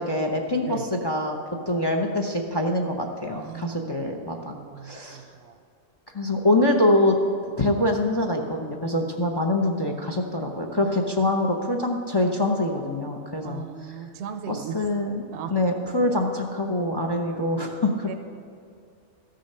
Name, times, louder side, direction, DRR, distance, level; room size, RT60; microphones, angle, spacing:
voice 1, 0.0-1.4 1.7-4.6 4.8-5.2 6.1-7.2 7.6-13.9 14.5-15.2 15.5-18.1, left 1 dB, 25° left, 3 dB, 0.6 m, -24 dB
voice 2, 0.6-0.9 3.3-3.8 4.3-5.6 10.8-11.0 13.4-14.8 15.3-15.5 16.0-16.1 17.0-17.5 18.1-18.2, right 8 dB, 70° right, 7 dB, 0.9 m, -38 dB
14.0 x 6.5 x 5.5 m, 2.4 s
omnidirectional pair, 1.2 m